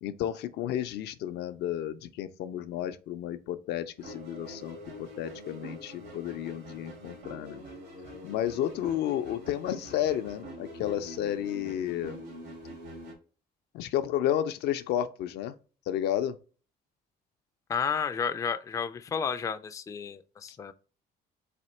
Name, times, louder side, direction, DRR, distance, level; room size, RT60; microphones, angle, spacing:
voice 1, 0.0-7.6 8.2-12.2 13.7-15.5 15.9-16.4, left 11 dB, 75° left, 0.5 m, -32 dB
sound 1, 4.0-13.1, equal, 80° right, 2.2 m, -44 dB
voice 2, 17.7-20.7, left 6 dB, 20° left, 0.3 m, -32 dB
4.2 x 2.8 x 4.2 m
cardioid pair, 110°, 17 cm